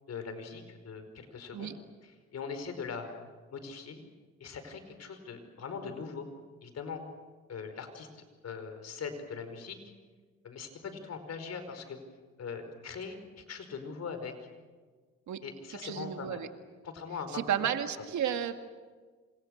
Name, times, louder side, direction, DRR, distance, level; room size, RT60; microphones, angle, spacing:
voice 1, 0.1-1.7 2.0-3.1 3.5-4.0 4.4-6.2 6.6-7.0 7.5-9.8 10.4-12.0 12.4-14.3 15.4-16.4 16.8-17.7, left 5 dB, 55° left, 8 dB, 5.1 m, -41 dB
voice 2, 15.8-16.5 17.3-18.5, right 9 dB, 70° right, 7 dB, 2.1 m, -32 dB
28.0 x 27.0 x 6.6 m, 1.4 s
cardioid pair, 90°, 30 cm